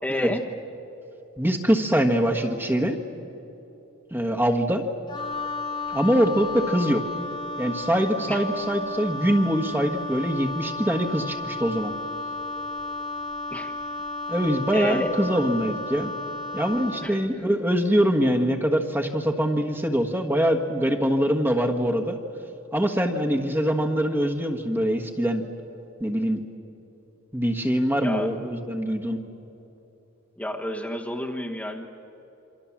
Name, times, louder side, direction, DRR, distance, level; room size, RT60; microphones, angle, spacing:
voice 1, 0.0-0.4 8.3-8.4 13.5-13.7 14.7-15.1 17.0-17.2 28.0-28.3 30.4-31.9, left 1 dB, 5° left, 0 dB, 1.3 m, -30 dB
voice 2, 1.4-3.0 4.1-4.8 5.9-7.0 7.6-11.9 14.3-16.1 16.5-22.2 22.7-25.4 26.0-26.4 27.3-29.2, equal, 10° right, 3 dB, 1.5 m, -23 dB
Wind instrument woodwind instrument, 5.1-17.2, left 2 dB, 25° left, 1.7 m, -33 dB
27.5 x 25.0 x 7.3 m, 3.0 s
head